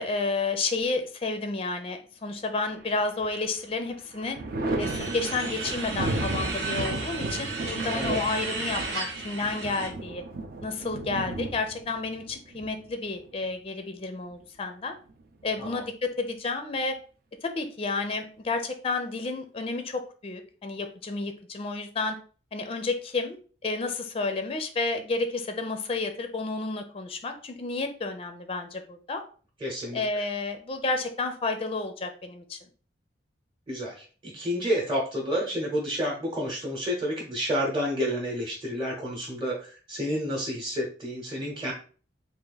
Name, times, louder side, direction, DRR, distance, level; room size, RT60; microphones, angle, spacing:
voice 1, 0.0-4.4 4.8-10.2 10.6-14.9 15.4-17.0 17.4-22.2 22.5-29.2 29.9-32.6, left 3 dB, 30° left, 7 dB, 0.4 m, -31 dB
Thunder, 2.7-3.5 3.9-13.4 14.9-15.8, right 2 dB, 55° right, 0.6 m, -34 dB
sound 1, 4.8-9.9, right 4 dB, 75° right, 1.0 m, -34 dB
voice 2, 29.6-30.0 33.7-41.7, equal, 25° right, -3 dB, 0.9 m, -30 dB
3.5 x 2.4 x 3.9 m, 0.40 s
head